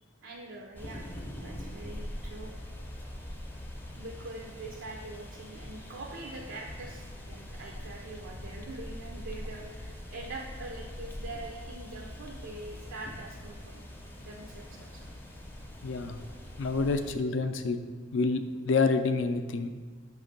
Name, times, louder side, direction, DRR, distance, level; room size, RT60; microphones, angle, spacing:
voice 1, 0.2-2.5 4.0-13.8 14.2-15.1, right 2 dB, 85° right, 0 dB, 0.5 m, -44 dB
sound 1, 0.7-17.2, left 1 dB, 10° left, 0.5 m, -43 dB
voice 2, 15.8-16.2 16.6-17.8 18.1-19.7, left 4 dB, 70° left, 9 dB, 0.4 m, -28 dB
5.8 x 3.2 x 5.2 m, 1.5 s
head